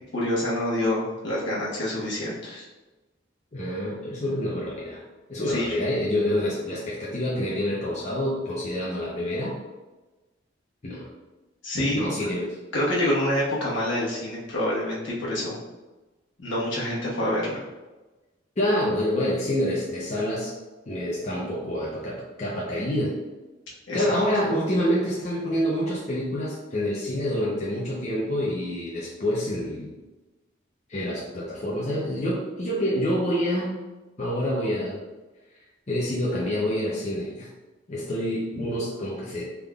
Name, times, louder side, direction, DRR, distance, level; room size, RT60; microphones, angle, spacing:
voice 1, 0.1-2.7 5.5-5.7 11.6-12.3 12.7-15.6 16.4-17.6 23.9-24.2, left 1 dB, 70° left, -6 dB, 1.1 m, -27 dB
voice 2, 3.5-5.0 5.3-9.5 10.8-11.1 12.0-12.6 18.6-20.5 20.9-23.1 23.9-29.9 30.9-33.8 34.2-35.0 35.6-37.5 37.9-39.4, equal, 35° left, -6 dB, 0.6 m, -27 dB
3.6 x 3.5 x 2.3 m, 1.2 s
head